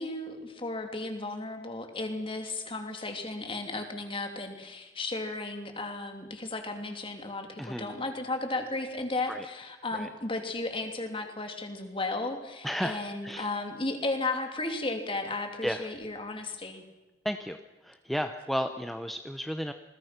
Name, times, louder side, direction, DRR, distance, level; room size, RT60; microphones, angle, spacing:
voice 1, 0.0-16.8, left 2 dB, 30° left, 5 dB, 3.1 m, -34 dB
voice 2, 7.6-7.9 9.3-9.5 9.9-10.1 12.6-13.5 15.6-15.9 17.2-19.7, equal, ahead, 6 dB, 0.9 m, -33 dB
28.5 x 20.5 x 6.0 m, 1.1 s
head